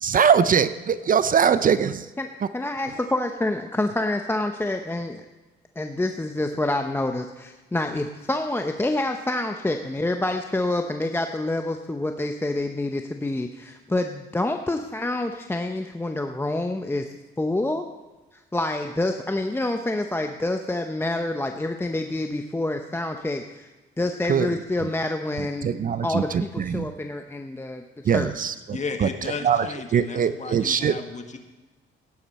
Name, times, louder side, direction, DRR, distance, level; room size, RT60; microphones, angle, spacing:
voice 1, 0.0-1.9 24.3-24.5 25.6-26.9 28.1-29.1 29.4-29.7 29.9-31.0, right 7 dB, 45° right, 14 dB, 0.6 m, -22 dB
voice 2, 2.5-5.2 5.8-17.8 18.3-23.7 24.0-25.7 26.0-28.3, left 2 dB, 10° left, 5 dB, 0.7 m, -27 dB
voice 3, 28.7-31.4, left 4 dB, 35° left, 6 dB, 1.6 m, -34 dB
15.5 x 10.5 x 4.3 m, 1.2 s
cardioid pair, 90°, 20 cm